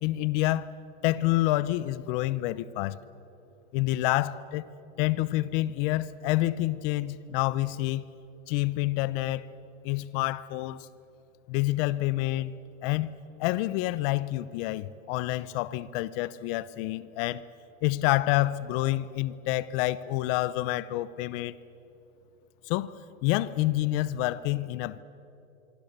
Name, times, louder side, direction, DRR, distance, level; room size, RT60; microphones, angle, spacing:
voice 1, 0.0-0.7 1.0-3.0 3.7-4.7 5.0-8.1 8.5-9.5 9.8-10.9 11.5-12.5 12.8-13.1 13.4-17.4 17.8-21.6 22.7-22.9 23.2-25.0, left 17 dB, 45° left, 0.9 m, -28 dB
25.0 x 24.5 x 6.8 m
hypercardioid pair, 130°, 40 cm